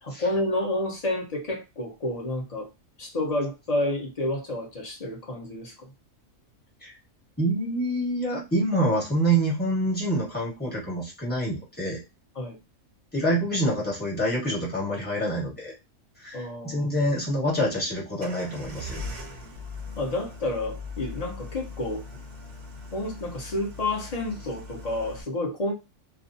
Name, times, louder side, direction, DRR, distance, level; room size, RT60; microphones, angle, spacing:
voice 1, 0.0-2.7 3.0-5.7 12.3-12.6 16.3-16.8 20.0-22.0 22.9-25.7, left 1 dB, 35° left, -1 dB, 0.7 m, -30 dB
voice 2, 7.4-12.0 13.1-15.7 16.2-19.0, right 1 dB, 10° left, -5 dB, 1.2 m, -26 dB
sound 1, 18.2-25.2, left 2 dB, 55° right, 0.5 m, -40 dB
2.4 x 2.3 x 2.6 m, 0.25 s
omnidirectional pair, 1.4 m